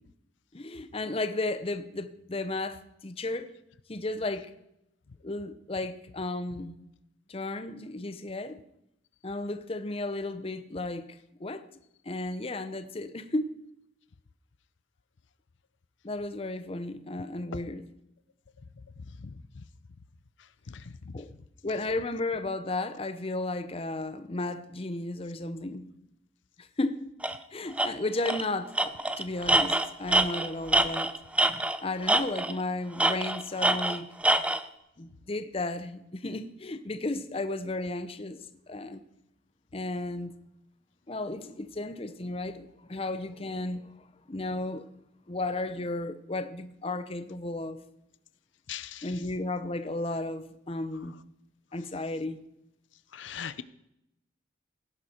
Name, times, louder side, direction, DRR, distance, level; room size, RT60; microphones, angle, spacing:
voice 1, 0.5-3.5 3.9-4.5 5.2-6.7 7.3-8.6 9.2-11.7 12.0-13.6 16.0-17.9 21.1-21.3 21.6-25.9 26.6-27.0 27.5-31.2 31.8-34.1 35.0-39.0 39.7-40.3 41.1-44.9 45.3-47.8 49.0-51.2 51.7-52.4, left 2 dB, 30° left, 0.8 m, -34 dB
voice 2, 20.7-21.1 48.7-49.1 53.1-53.6, left 8 dB, 85° left, 0.6 m, -40 dB
Tools, 27.2-27.4 27.8-27.9 28.3-28.5 28.8-31.8 32.1-32.6 33.0-34.6, right 1 dB, 5° right, 0.6 m, -25 dB
17.0 x 11.0 x 4.4 m
head